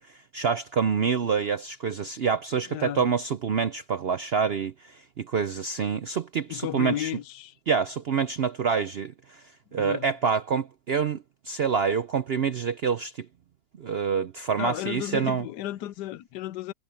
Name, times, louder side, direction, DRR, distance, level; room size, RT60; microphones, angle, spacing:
voice 1, 0.3-4.7 5.2-7.1 7.7-9.4 9.7-11.2 11.5-13.3 13.8-15.4, right 6 dB, 65° right, 0.6 m, -26 dB
voice 2, 2.7-3.0 6.5-7.6 9.8-10.1 14.6-16.7, left 13 dB, 80° left, 1.3 m, -33 dB
omnidirectional pair, 1.8 m